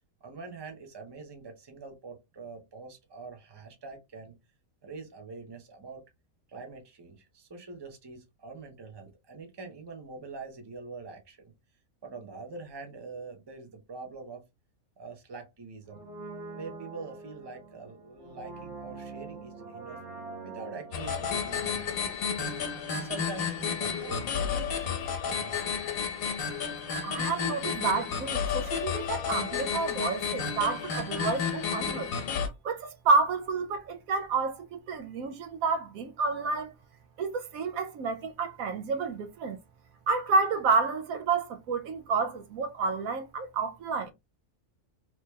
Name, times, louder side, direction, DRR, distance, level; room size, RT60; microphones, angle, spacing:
voice 1, 0.2-4.4 4.8-6.0 6.5-11.5 12.0-14.5 15.0-16.0 16.6-20.0 20.4-22.4 22.9-25.8, right 4 dB, 25° right, 0.7 m, -44 dB
Brass instrument, 15.8-22.7 23.0-23.1, right 3 dB, 55° right, 1.5 m, -45 dB
sound 1, 20.9-32.5, left 6 dB, 80° left, 1.3 m, -31 dB
voice 2, 27.0-32.1 32.6-36.7 37.2-39.6 40.1-44.1, right 4 dB, 80° right, 1.1 m, -29 dB
3.2 x 2.8 x 3.2 m
omnidirectional pair, 1.5 m